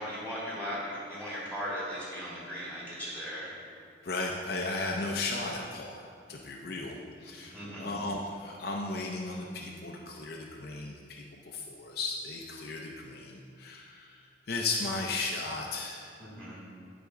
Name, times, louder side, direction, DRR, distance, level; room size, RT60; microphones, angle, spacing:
voice 1, 0.0-3.5 7.3-7.9 16.2-16.6, equal, 15° right, -9 dB, 2.1 m, -38 dB
voice 2, 4.0-14.2 14.5-16.1, left 3 dB, 60° left, -1 dB, 0.6 m, -35 dB
11.5 x 4.9 x 3.7 m, 2.2 s
head